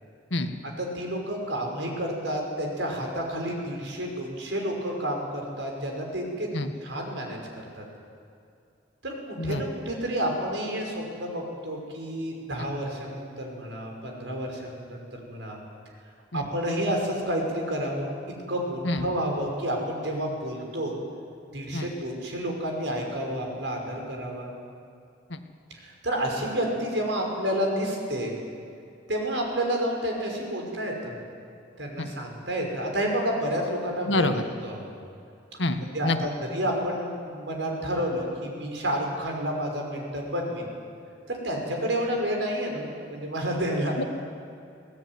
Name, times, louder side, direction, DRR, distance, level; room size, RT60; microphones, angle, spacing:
voice 1, 0.8-6.5 6.8-7.4 7.8-7.9 9.0-15.6 16.3-18.1 18.5-21.0 21.5-24.5 25.8-28.4 29.1-31.1 31.8-34.3 34.6-34.9 35.8-40.7 41.3-44.0, equal, 80° right, 1 dB, 5.6 m, -30 dB
voice 2, 34.1-34.4 35.6-36.2 44.0-44.1, left 2 dB, 80° left, 6 dB, 1.7 m, -26 dB
23.0 x 17.5 x 9.6 m, 2.5 s
head